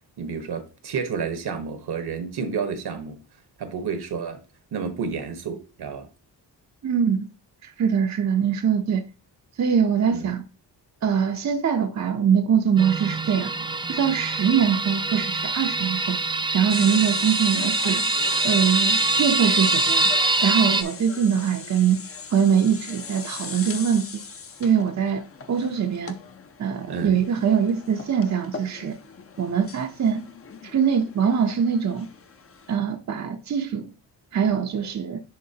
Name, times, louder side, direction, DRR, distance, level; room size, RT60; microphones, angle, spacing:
voice 1, 0.2-3.2 3.6-4.4 4.7-6.1 10.1-10.3 26.9-27.1, right 5 dB, 70° right, 1.3 m, -30 dB
voice 2, 6.8-7.3 7.6-9.0 9.6-10.4 11.0-13.5 13.9-16.2 16.5-18.0 18.4-20.1 20.4-22.0 22.3-24.2 24.6-25.2 25.5-26.1 26.6-29.0 29.4-30.2 30.6-32.1 32.7-33.9 34.3-35.2, right 7 dB, 40° right, 0.7 m, -23 dB
sound 1, 12.8-20.8, right 3 dB, 10° right, 0.4 m, -24 dB
sound 2, 16.7-32.8, left 5 dB, 35° left, 0.7 m, -38 dB
10.5 x 3.7 x 2.8 m
wide cardioid pair, 125°, 41 cm